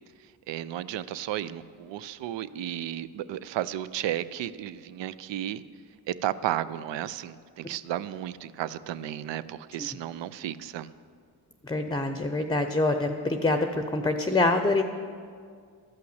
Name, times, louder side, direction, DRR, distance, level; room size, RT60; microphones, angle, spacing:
voice 1, 0.5-5.6 6.1-10.9, right 12 dB, 80° right, 15 dB, 0.5 m, -33 dB
voice 2, 11.6-14.8, left 2 dB, 10° left, 7 dB, 0.6 m, -25 dB
13.0 x 5.7 x 7.9 m, 2.1 s
cardioid pair, 75°, 42 cm